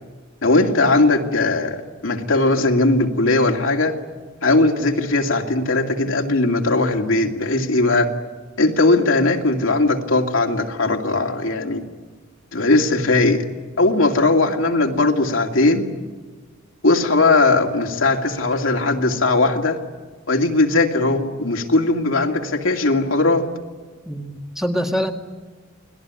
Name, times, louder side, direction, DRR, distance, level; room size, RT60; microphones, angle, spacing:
voice 1, 0.4-3.9 4.4-8.1 8.6-11.8 12.5-13.4 13.8-15.9 16.8-19.8 20.3-23.5, left 2 dB, 80° left, 2 dB, 2.5 m, -18 dB
voice 2, 24.1-25.1, equal, ahead, 2 dB, 2.1 m, -24 dB
29.5 x 20.5 x 9.6 m, 1.4 s
head